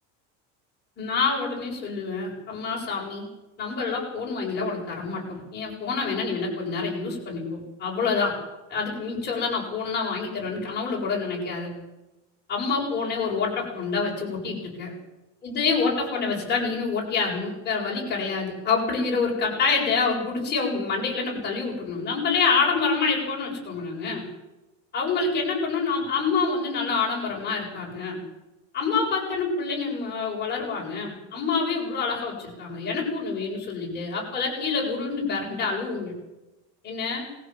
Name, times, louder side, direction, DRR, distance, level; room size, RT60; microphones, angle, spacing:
voice 1, 1.0-3.3 3.6-8.3 8.7-11.7 12.5-14.9 15.4-24.2 24.9-28.2 28.7-36.1 36.8-37.2, left 4 dB, 25° left, -2 dB, 7.7 m, -27 dB
22.0 x 15.5 x 7.6 m, 1.0 s
cardioid pair, 160°, 37 cm